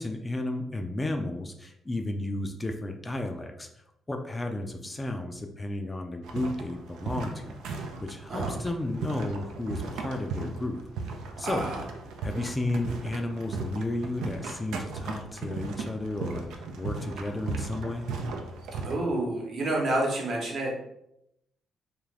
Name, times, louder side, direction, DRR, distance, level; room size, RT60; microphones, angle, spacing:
voice 1, 0.0-3.7 4.1-10.8 11.1-11.7 12.2-18.1, left 2 dB, 20° left, 5 dB, 0.3 m, -33 dB
sound 1, 6.2-19.0, right 4 dB, 85° right, 0.4 m, -36 dB
voice 2, 11.4-11.8 18.8-20.7, right 2 dB, 60° right, -2 dB, 1.0 m, -29 dB
2.5 x 2.4 x 3.2 m, 0.81 s
cardioid pair, 90°, 0 cm